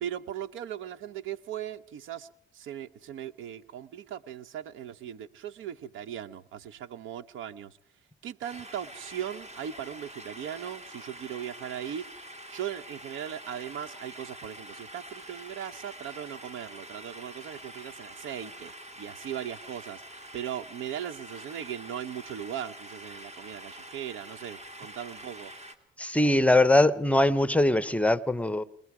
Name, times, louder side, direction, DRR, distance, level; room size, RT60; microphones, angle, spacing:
voice 1, 0.0-2.3 2.5-7.8 8.2-12.1 12.5-20.0 20.3-25.5, right 10 dB, 80° right, 0.8 m, -38 dB
sound 1, 8.4-25.8, right 1 dB, 35° right, 2.5 m, -46 dB
voice 2, 26.0-28.6, left 1 dB, 5° left, 0.8 m, -22 dB
29.5 x 20.0 x 4.8 m
cardioid pair, 90°, 20 cm